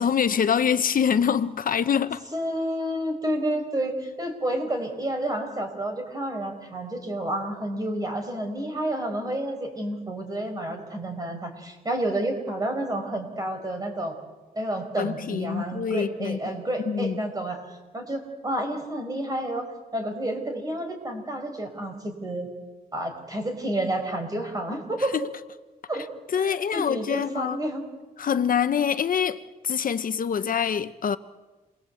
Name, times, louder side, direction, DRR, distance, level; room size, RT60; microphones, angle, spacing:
voice 1, 0.0-2.2 15.0-16.4 16.9-17.2 26.3-27.6 28.2-31.2, left 7 dB, 60° left, 0.9 m, -25 dB
voice 2, 2.3-14.2 14.6-17.6 17.9-19.7 19.9-22.5 22.9-25.2 25.9-26.0 26.4-27.8, right 1 dB, 25° right, 5.4 m, -30 dB
28.5 x 22.5 x 8.4 m
wide cardioid pair, 140°, 16 cm